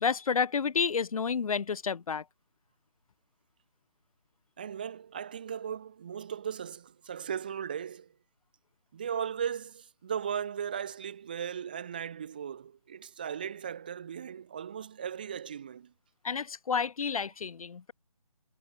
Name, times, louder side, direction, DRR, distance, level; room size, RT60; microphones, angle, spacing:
voice 1, 0.0-2.2 16.2-17.9, left 6 dB, 60° left, 0.5 m, -30 dB
voice 2, 4.6-8.1 8.9-15.9, right 8 dB, 15° right, 0.6 m, -37 dB
figure-of-eight pair, 165°, 20 cm